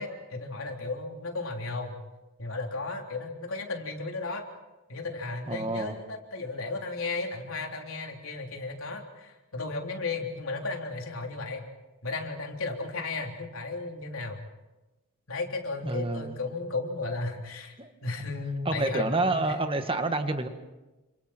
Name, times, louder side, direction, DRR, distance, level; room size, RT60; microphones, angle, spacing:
voice 1, 0.0-2.0 2.4-4.4 4.9-11.6 12.0-14.4 15.3-17.8 18.0-19.6, left 3 dB, 80° left, 1 dB, 3.7 m, -34 dB
voice 2, 5.5-5.9 15.8-16.4 17.8-17.9 18.6-20.5, right 2 dB, 25° right, 7 dB, 1.7 m, -28 dB
29.5 x 27.0 x 4.5 m, 1.1 s
head